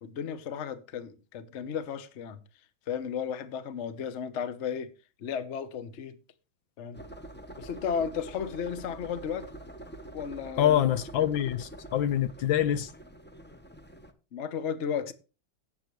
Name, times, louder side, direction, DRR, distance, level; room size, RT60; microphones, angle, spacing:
voice 1, 0.0-2.4 2.9-4.9 5.2-6.2 6.8-7.0 7.6-9.5 10.1-10.8 11.1-11.2 14.3-15.1, left 7 dB, 45° left, 1.1 m, -34 dB
sound 1, 6.9-14.1, right 1 dB, 15° left, 0.4 m, -46 dB
voice 2, 10.6-12.9, left 11 dB, 75° left, 1.5 m, -25 dB
17.5 x 7.7 x 3.2 m
omnidirectional pair, 2.2 m